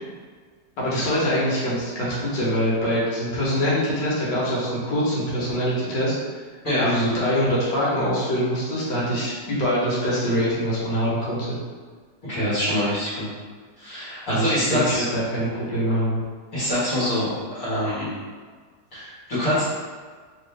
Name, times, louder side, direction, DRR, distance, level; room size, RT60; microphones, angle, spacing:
voice 1, 0.8-6.2 6.8-11.6 14.3-16.2, equal, 85° left, -7 dB, 1.8 m, -24 dB
voice 2, 6.6-7.0 12.2-13.3 13.8-15.1 16.5-18.1 18.9-19.6, left 1 dB, 50° left, -13 dB, 1.8 m, -25 dB
3.5 x 2.8 x 3.3 m, 1.5 s
omnidirectional pair, 1.9 m